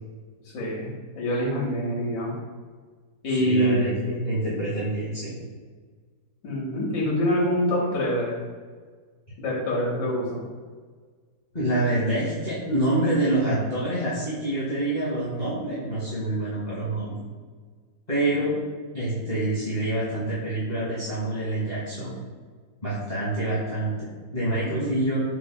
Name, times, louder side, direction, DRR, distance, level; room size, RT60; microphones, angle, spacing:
voice 1, 0.5-2.4 3.2-3.9 6.4-8.4 9.4-10.4, equal, 85° left, -4 dB, 1.6 m, -25 dB
voice 2, 3.2-5.3 11.5-17.2 18.1-18.5 18.9-22.1 22.8-25.2, right 1 dB, 25° left, -11 dB, 1.3 m, -26 dB
5.1 x 4.5 x 2.2 m, 1.5 s
omnidirectional pair, 1.8 m